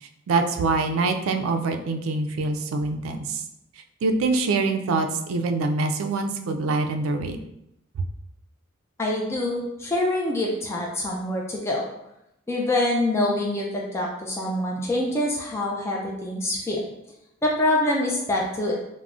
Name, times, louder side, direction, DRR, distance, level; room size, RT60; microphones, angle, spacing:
voice 1, 0.0-3.4 4.0-7.4, right 3 dB, 85° right, 6 dB, 0.3 m, -25 dB
voice 2, 9.0-11.9 12.5-16.8 17.4-18.7, left 1 dB, 15° left, -2 dB, 0.3 m, -25 dB
3.5 x 2.0 x 2.4 m, 0.83 s
head